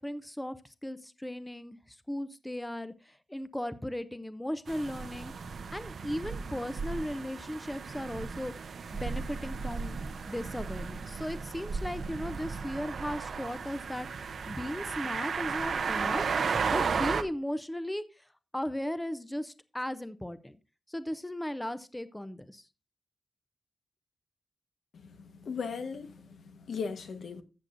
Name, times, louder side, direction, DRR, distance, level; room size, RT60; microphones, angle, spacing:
voice 1, 0.0-5.3 5.7-10.0 10.3-16.3 16.7-20.6 20.9-22.7, left 1 dB, 5° left, 0.5 m, -37 dB
sound 1, 4.7-17.2, right 5 dB, 65° right, 0.7 m, -34 dB
voice 2, 24.9-27.4, left 5 dB, 75° left, 1.1 m, -38 dB
14.0 x 7.6 x 2.5 m
wide cardioid pair, 170°, 0 cm